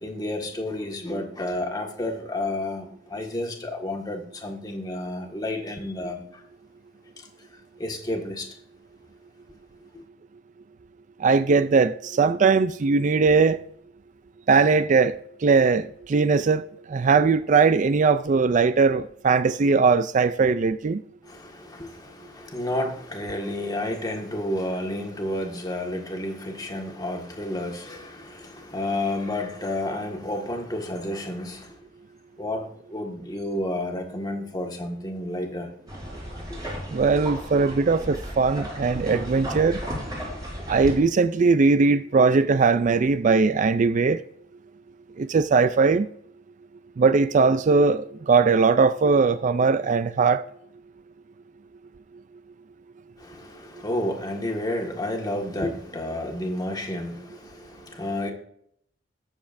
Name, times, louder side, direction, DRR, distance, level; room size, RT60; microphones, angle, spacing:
voice 1, 0.0-6.4 7.2-7.3 7.8-8.5 9.9-10.0 21.2-31.8 32.4-35.7 36.5-36.6 53.2-58.3, left 1 dB, 20° left, 1.7 m, -31 dB
voice 2, 11.2-13.6 14.5-15.1 15.4-21.0 36.9-39.8 40.7-44.2 45.2-46.1 47.0-50.4, right 4 dB, 45° right, 0.4 m, -20 dB
sound 1, 35.9-40.9, equal, 20° right, 5.1 m, -34 dB
21.0 x 7.2 x 2.6 m
head